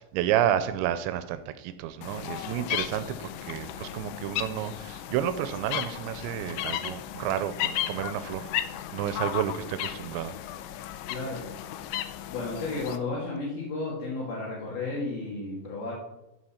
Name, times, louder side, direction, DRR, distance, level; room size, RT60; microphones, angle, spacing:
voice 1, 0.0-3.2 3.4-8.5 8.9-10.3, right 11 dB, 80° right, 11 dB, 2.7 m, -30 dB
sound 1, 2.0-13.0, left 12 dB, 80° left, 2.7 m, -35 dB
voice 2, 11.1-11.4 11.9-12.0 12.3-15.9, left 3 dB, 50° left, -5 dB, 3.2 m, -33 dB
13.5 x 5.4 x 5.7 m, 0.91 s
omnidirectional pair, 5.6 m